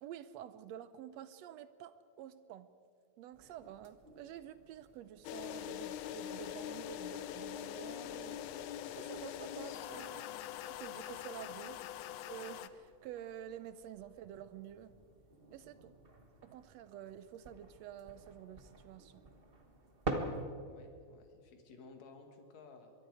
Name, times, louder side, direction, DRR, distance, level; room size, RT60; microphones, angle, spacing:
voice 1, 0.0-2.7 3.2-10.3 10.6-11.8 12.3-15.0 15.5-15.9 16.4-19.3, right 10 dB, 75° right, 13 dB, 1.7 m, -49 dB
sound 1, 3.3-20.5, right 2 dB, 40° right, 0.8 m, -49 dB
sound 2, 5.2-12.7, left 11 dB, 85° left, 2.2 m, -43 dB
voice 2, 11.8-12.1 20.6-22.9, left 4 dB, 65° left, 4 dB, 3.2 m, -57 dB
24.5 x 22.5 x 4.9 m, 2.3 s
omnidirectional pair, 3.4 m